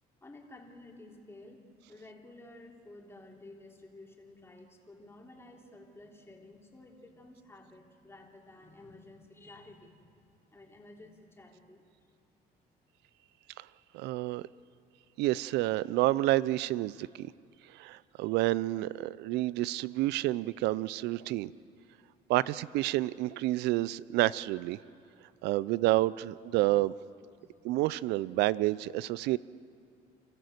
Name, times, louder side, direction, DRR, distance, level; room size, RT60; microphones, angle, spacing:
voice 1, 0.2-10.1 10.4-12.2 22.3-22.5 25.2-25.3 27.4-27.5, left 2 dB, 15° left, 0 dB, 3.4 m, -53 dB
voice 2, 13.9-14.5 15.2-17.3 17.7-21.5 22.3-24.8 25.4-26.9 27.6-29.4, right 17 dB, 90° right, 19 dB, 0.5 m, -29 dB
30.0 x 14.5 x 8.0 m, 2.3 s
cardioid pair, 110°, 17 cm